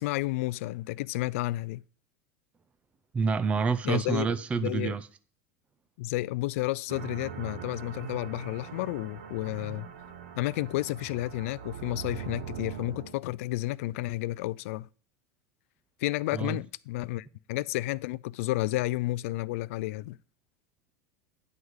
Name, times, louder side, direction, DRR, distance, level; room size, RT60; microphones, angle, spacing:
voice 1, 0.0-1.8 3.8-4.3 4.6-4.9 6.0-9.9 10.4-14.9 16.0-20.2, left 18 dB, 75° left, 0.4 m, -31 dB
voice 2, 3.1-5.1 16.3-16.6, right 5 dB, 15° right, 0.4 m, -28 dB
sound 1, 6.9-13.2, right 7 dB, 80° right, 1.4 m, -41 dB
9.7 x 4.9 x 8.0 m
supercardioid pair, 145°, 7 cm